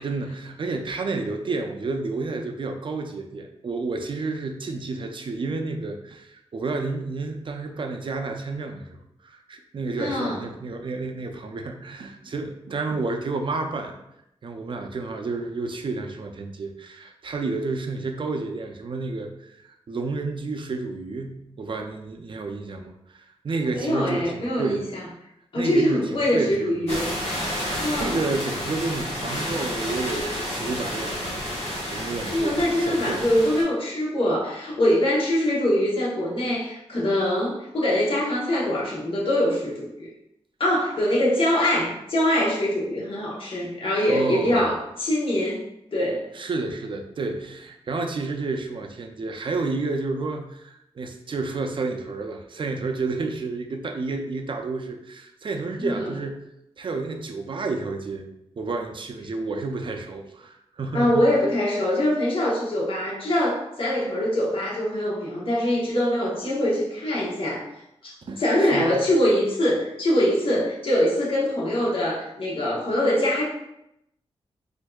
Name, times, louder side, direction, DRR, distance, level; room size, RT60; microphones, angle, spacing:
voice 1, 0.0-8.9 9.2-14.0 14.4-24.9 25.5-27.0 27.3-31.5 31.9-33.2 44.1-44.6 46.3-56.4 56.8-58.3 58.6-61.3 68.2-68.4 68.7-68.9, right 3 dB, 50° right, 4 dB, 0.5 m, -30 dB
voice 2, 10.0-10.4 23.7-25.0 25.5-27.1 27.8-28.2 32.3-40.1 40.6-45.6 45.9-46.2 55.8-56.1 60.9-67.6 68.0-73.4, left 1 dB, 55° left, -5 dB, 1.0 m, -23 dB
sound 1, 26.9-33.6, equal, 80° left, 1.3 m, -30 dB
4.3 x 2.6 x 2.3 m, 0.82 s
cardioid pair, 70°, 11 cm